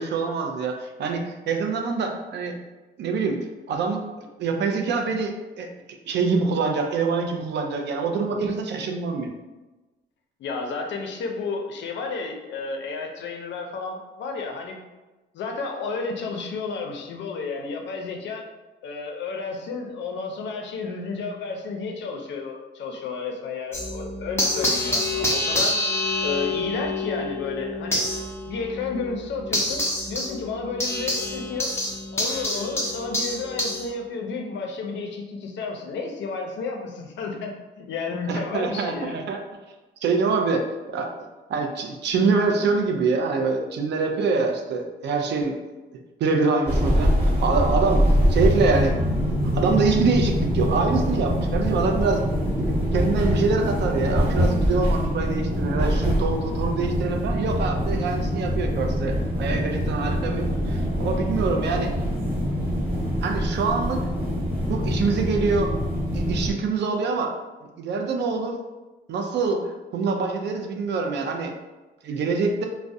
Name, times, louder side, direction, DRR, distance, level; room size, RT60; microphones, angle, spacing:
voice 1, 0.0-2.5 3.0-5.7 6.1-9.3 38.3-39.4 40.0-41.1 41.5-45.6 46.2-49.0 49.5-52.2 52.6-61.9 63.2-64.0 64.7-65.8 66.1-67.4 67.8-68.6 69.1-71.5 72.0-72.7, right 4 dB, 60° right, 3 dB, 0.4 m, -25 dB
voice 2, 10.4-14.8 15.3-18.4 18.8-25.8 26.2-28.0 28.5-29.8 30.1-31.7 32.1-37.5 37.8-39.2, left 4 dB, 65° left, 3 dB, 0.5 m, -31 dB
sound 1, 23.7-33.9, left 2 dB, 15° left, 0.6 m, -27 dB
sound 2, 46.7-66.5, equal, 30° right, 1.2 m, -24 dB
2.3 x 2.0 x 2.6 m, 1.1 s
cardioid pair, 90°, 20 cm